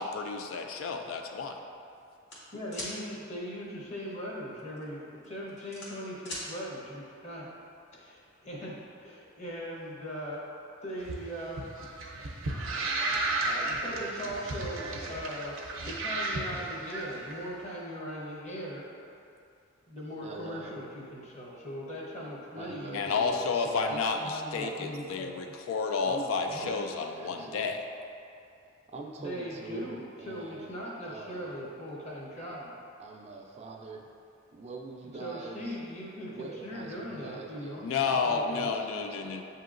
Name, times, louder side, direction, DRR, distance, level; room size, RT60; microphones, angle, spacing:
voice 1, 0.0-1.6 22.9-27.8 37.8-39.4, left 4 dB, 85° left, 4 dB, 0.3 m, -31 dB
sound 1, 2.3-2.9 4.6-4.8 5.2-6.5, left 1 dB, 60° left, 1.2 m, -39 dB
voice 2, 2.5-7.5 7.9-10.4 10.8-11.7 13.7-15.6 15.9-18.9 19.9-23.4 23.9-25.3 26.5-26.7 29.2-32.7 35.2-37.9 38.3-38.7, equal, 35° left, -4 dB, 0.8 m, -40 dB
sound 2, 11.0-17.3, right 2 dB, 80° right, 0.5 m, -33 dB
voice 3, 13.4-15.2 20.2-20.8 22.6-24.0 24.6-24.8 26.0-27.7 28.9-31.6 33.0-34.1 34.5-35.8 36.3-39.4, right 3 dB, 35° right, 1 dB, 0.3 m, -44 dB
7.5 x 2.8 x 2.5 m, 2.5 s
head